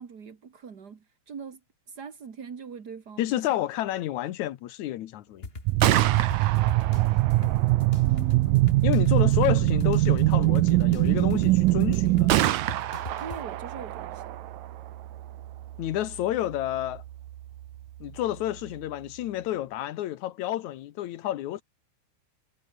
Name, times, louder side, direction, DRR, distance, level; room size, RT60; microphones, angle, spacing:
voice 1, 0.0-1.6 1.9-3.3 8.0-8.7 13.2-14.3, right 6 dB, 45° right, 1.2 m, -42 dB
voice 2, 3.2-5.5 8.8-12.3 15.8-17.0 18.0-21.6, left 13 dB, 75° left, 1.8 m, -30 dB
sound 1, 5.4-13.4, left 4 dB, 55° left, 0.6 m, -42 dB
Gunshot gunfire, 5.6-19.4, right 13 dB, 70° right, 1.9 m, -33 dB
sound 2, 5.7-12.4, right 18 dB, 85° right, 1.9 m, -22 dB
omnidirectional pair, 4.7 m